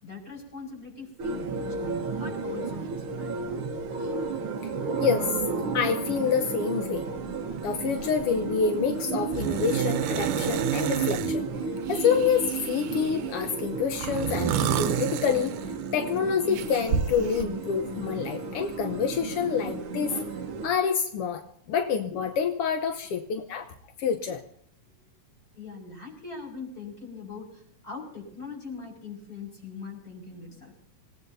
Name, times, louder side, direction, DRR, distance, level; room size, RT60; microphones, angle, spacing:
voice 1, 0.0-1.8 2.1-3.6 25.5-30.8, left 4 dB, 25° left, 1 dB, 6.0 m, -41 dB
sound 1, 1.2-20.7, right 4 dB, 55° right, 1.6 m, -33 dB
voice 2, 5.0-5.3 5.7-7.1 7.6-11.5 11.9-15.5 15.9-20.2 20.6-21.4 21.7-23.7 24.0-24.4, left 6 dB, 65° left, 5 dB, 1.5 m, -27 dB
sound 2, 7.5-7.7 8.0-8.4 9.3-11.4 11.9-13.3 13.9-16.0 16.5-17.4, right 9 dB, 85° right, 2.4 m, -30 dB
26.5 x 16.5 x 2.7 m, 0.70 s
omnidirectional pair, 3.6 m